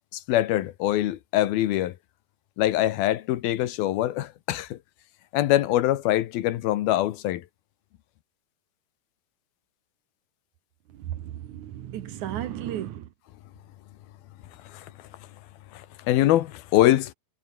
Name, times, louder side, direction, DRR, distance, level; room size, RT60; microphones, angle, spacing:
voice 1, 0.1-2.0 2.6-4.8 5.3-7.4 14.6-15.1 15.7-17.1, left 14 dB, 70° left, 2.8 m, -24 dB
voice 2, 10.9-13.1, right 11 dB, 65° right, 2.1 m, -34 dB
omnidirectional pair, 4.8 m